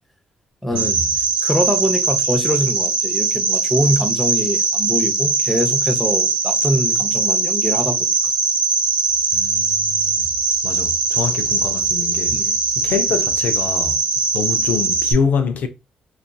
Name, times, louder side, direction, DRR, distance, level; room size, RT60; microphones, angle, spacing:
voice 1, 0.6-1.0 1.4-8.1 12.3-12.5, equal, ahead, 0.6 m, -23 dB
Cricket, 0.8-15.1, right 4 dB, 40° right, 0.6 m, -20 dB
voice 2, 9.3-10.3 10.6-12.4 12.8-14.0 14.3-15.7, left 6 dB, 70° left, 0.4 m, -25 dB
2.7 x 2.4 x 2.2 m
cardioid pair, 95°, 3 cm